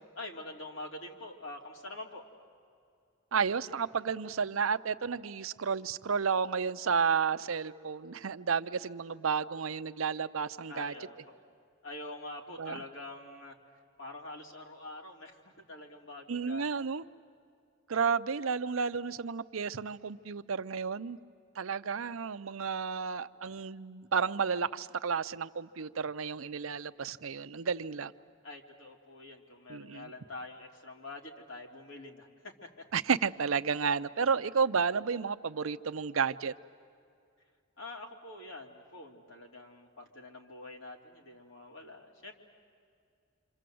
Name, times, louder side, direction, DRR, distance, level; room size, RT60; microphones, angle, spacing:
voice 1, 0.1-2.2 10.7-11.4 11.8-13.6 14.0-16.6 28.4-32.5 37.8-42.3, left 2 dB, 70° left, 1 dB, 3.0 m, -45 dB
voice 2, 3.3-10.9 12.6-12.8 16.3-17.0 17.9-21.2 21.6-28.1 29.7-30.1 32.9-36.5, right 6 dB, 85° right, 12 dB, 0.7 m, -32 dB
27.5 x 26.5 x 7.8 m, 2.3 s
head